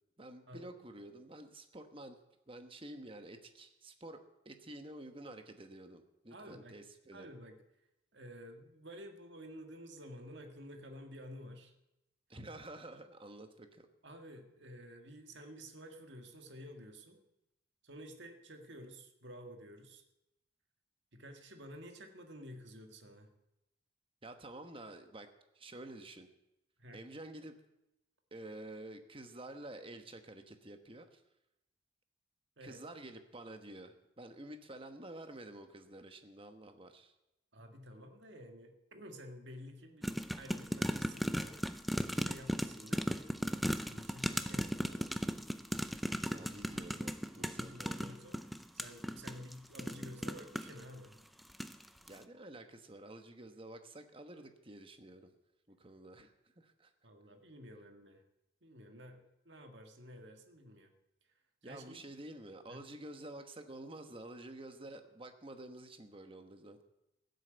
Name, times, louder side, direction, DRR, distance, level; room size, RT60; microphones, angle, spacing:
voice 1, 0.2-2.2 2.5-4.2 4.4-7.3 12.3-13.9 24.2-25.3 25.5-26.3 26.9-27.6 28.3-31.2 32.6-37.1 46.2-48.1 52.0-55.3 55.7-56.9 61.6-66.8, right 1 dB, 25° right, 7 dB, 1.1 m, -50 dB
voice 2, 6.3-6.8 7.1-11.7 14.0-17.2 17.8-20.0 21.1-23.3 26.8-27.0 32.6-32.8 37.5-43.6 43.9-45.1 46.3-47.1 47.3-48.4 48.7-51.2 57.0-58.2 58.6-60.9 61.6-62.1 62.7-62.8, equal, 60° right, 5 dB, 1.8 m, -52 dB
sound 1, 40.0-50.8 51.4-51.8 52.1-52.2, equal, ahead, 0.4 m, -36 dB
15.5 x 8.0 x 8.0 m, 0.89 s
head